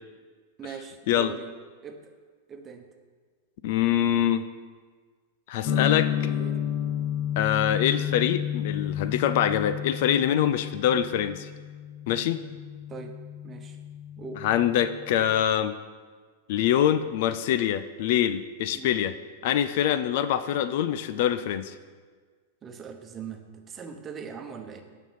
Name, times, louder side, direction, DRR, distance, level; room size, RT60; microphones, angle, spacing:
voice 1, 0.6-1.5 1.8-2.1 2.5-2.9 6.2-6.6 12.9-13.2 13.4-13.8 14.2-14.5 18.7-18.9 22.6-24.8, right 6 dB, 25° right, 5 dB, 1.0 m, -41 dB
voice 2, 3.6-4.4 5.5-6.3 7.4-11.5 12.1-12.4 14.4-15.7 16.5-19.1 19.4-21.7, left 10 dB, 60° left, 13 dB, 0.4 m, -24 dB
sound 1, 5.6-15.4, left 10 dB, 45° left, 1.0 m, -31 dB
9.1 x 5.4 x 5.7 m, 1.5 s
hypercardioid pair, 115°, 0 cm